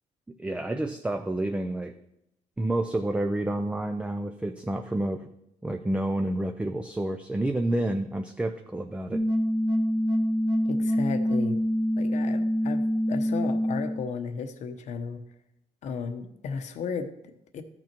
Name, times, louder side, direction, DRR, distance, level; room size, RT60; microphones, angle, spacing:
voice 1, 0.4-1.9 2.6-5.3 5.6-9.2, right 1 dB, 10° right, 5 dB, 0.5 m, -29 dB
sound 1, 9.1-14.1, equal, 30° right, 1.6 m, -25 dB
voice 2, 10.6-11.6 12.0-12.8 13.1-15.2 15.8-17.6, left 5 dB, 60° left, 8 dB, 0.9 m, -34 dB
13.5 x 6.1 x 4.5 m, 0.80 s
cardioid pair, 145°, 13 cm